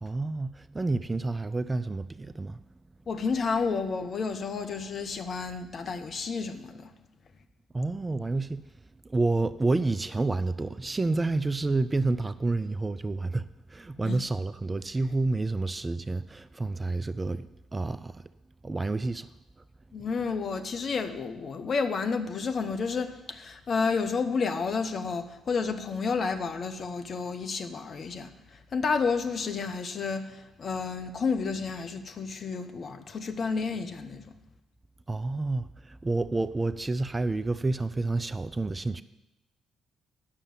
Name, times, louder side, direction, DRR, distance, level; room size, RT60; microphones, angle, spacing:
voice 1, 0.0-2.6 7.7-8.6 9.0-18.2 18.6-19.3 35.1-39.0, right 3 dB, 25° right, 0.4 m, -29 dB
voice 2, 3.1-6.9 14.0-14.2 19.9-28.3 28.7-34.4, left 5 dB, 45° left, 0.9 m, -31 dB
9.8 x 6.6 x 7.6 m
figure-of-eight pair, 45°, 0 cm